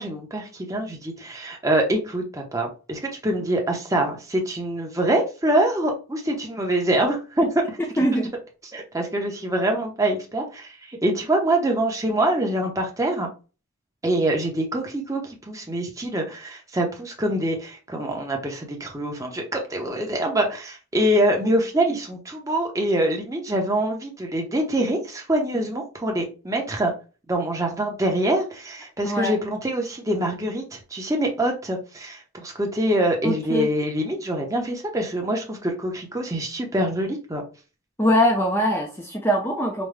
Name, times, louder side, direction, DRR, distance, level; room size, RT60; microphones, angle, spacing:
voice 1, 0.0-7.8 8.7-13.3 14.0-26.9 27.3-37.4, right 1 dB, 15° right, 1 dB, 0.9 m, -25 dB
voice 2, 8.0-8.3 29.0-29.3 33.2-33.7 38.0-39.9, equal, 10° left, 1 dB, 0.5 m, -22 dB
5.3 x 2.2 x 3.3 m, 0.33 s
head